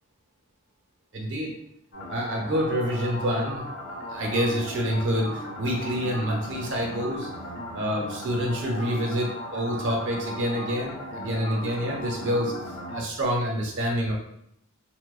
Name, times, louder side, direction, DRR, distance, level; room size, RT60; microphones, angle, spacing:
voice 1, 1.1-1.5 2.1-3.7 4.0-7.3 7.7-12.5 12.9-14.1, equal, 60° right, -1 dB, 0.6 m, -27 dB
sound 1, 1.9-13.0, left 1 dB, 70° left, 0.8 m, -37 dB
2.6 x 2.1 x 2.3 m, 0.75 s
head